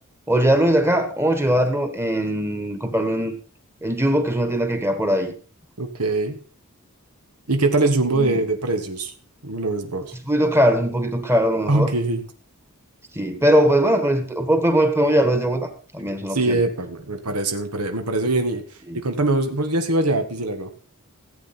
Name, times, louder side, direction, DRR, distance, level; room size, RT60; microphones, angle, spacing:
voice 1, 0.3-3.3 3.8-5.3 8.1-8.4 10.3-11.9 13.1-16.6 18.9-19.0, equal, 10° right, 7 dB, 1.4 m, -20 dB
voice 2, 5.8-6.4 7.5-9.1 9.4-10.1 11.7-12.2 16.3-20.7, right 2 dB, 90° right, 6 dB, 1.6 m, -23 dB
15.5 x 8.6 x 4.3 m, 0.40 s
head